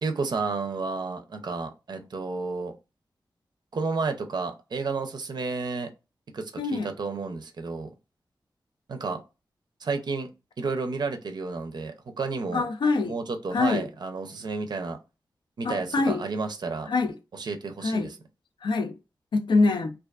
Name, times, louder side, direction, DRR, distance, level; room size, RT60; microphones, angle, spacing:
voice 1, 0.0-2.7 3.7-5.9 6.3-7.9 8.9-9.2 9.8-10.3 10.6-12.7 13.0-15.0 15.6-16.9 17.3-18.2, right 4 dB, 65° right, 0.5 m, -31 dB
voice 2, 6.6-6.9 12.5-13.1 13.5-13.9 15.6-16.2 16.9-17.2 17.8-18.1 18.6-18.9 19.3-19.9, left 3 dB, 80° left, 0.4 m, -24 dB
2.4 x 2.3 x 2.3 m
cardioid pair, 50°, 8 cm